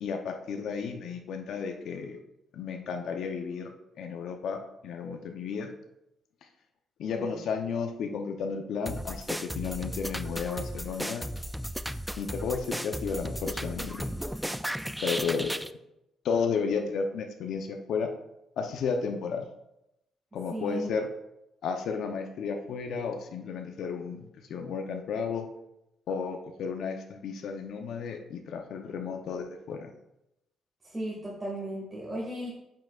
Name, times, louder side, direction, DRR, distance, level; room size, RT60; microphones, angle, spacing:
voice 1, 0.0-2.2 2.5-3.7 4.0-5.7 7.0-11.3 12.2-14.1 15.0-15.5 16.2-18.1 18.6-19.5 20.3-21.1 21.6-25.5 26.1-29.9, left 5 dB, 75° left, 5 dB, 0.7 m, -33 dB
sound 1, 8.9-15.7, equal, ahead, 0.3 m, -35 dB
voice 2, 20.5-20.9 30.8-32.5, equal, 20° right, -5 dB, 1.9 m, -35 dB
8.9 x 5.7 x 2.4 m, 0.87 s
cardioid pair, 90°, 0 cm